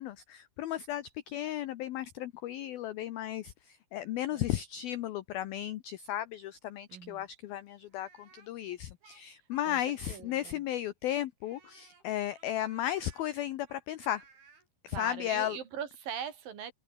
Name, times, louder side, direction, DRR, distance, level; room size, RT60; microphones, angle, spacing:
voice 1, 0.0-14.2 14.8-15.6, left 12 dB, 80° left, 2.1 m, -35 dB
voice 2, 6.9-7.3 9.7-9.8 10.1-10.6 14.9-16.7, right 8 dB, 50° right, 4.4 m, -41 dB
Speech, 7.9-10.8 11.4-14.7, right 5 dB, 70° right, 8.9 m, -60 dB
open air
omnidirectional pair, 5.6 m